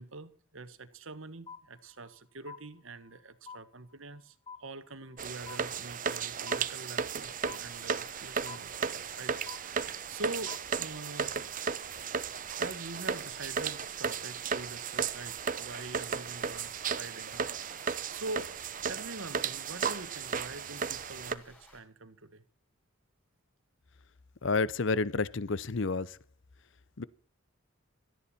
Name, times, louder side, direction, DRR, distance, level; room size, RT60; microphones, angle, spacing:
voice 1, 0.0-11.3 12.6-18.6 18.9-22.4, right 2 dB, 70° right, 1.5 m, -44 dB
sound 1, 1.5-2.2 2.5-3.2 3.5-4.2 4.5-5.2 5.5-6.2 6.5-7.2 7.5-8.2 8.5-9.2 9.5-10.2 10.5-11.2, left 5 dB, 25° left, 0.7 m, -49 dB
sound 2, 5.2-21.3, right 6 dB, 40° right, 0.8 m, -35 dB
sound 3, 7.2-21.8, left 1 dB, 5° left, 6.7 m, -58 dB
voice 2, 24.4-26.2 27.0-27.1, left 4 dB, 60° left, 0.7 m, -30 dB
17.5 x 13.5 x 4.4 m
head